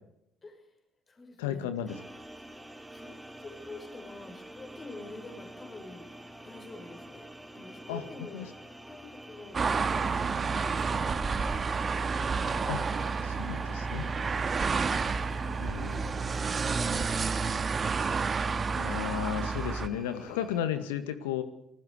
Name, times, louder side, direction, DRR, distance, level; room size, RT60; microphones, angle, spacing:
voice 1, 0.4-0.7 1.1-2.0 2.4-6.1 6.4-7.3 7.5-11.7 14.6-17.4, left 2 dB, 30° left, 4 dB, 5.9 m, -48 dB
voice 2, 1.4-2.0 7.9-8.0 8.3-8.5 12.7-12.8 13.2-14.1 15.6-16.0 18.7-21.4, left 10 dB, 75° left, 10 dB, 2.0 m, -34 dB
sound 1, 1.9-20.6, right 1 dB, 5° right, 2.8 m, -48 dB
sound 2, 9.5-19.9, right 5 dB, 35° right, 2.1 m, -30 dB
27.5 x 19.5 x 5.0 m, 0.79 s
figure-of-eight pair, 55°, 0 cm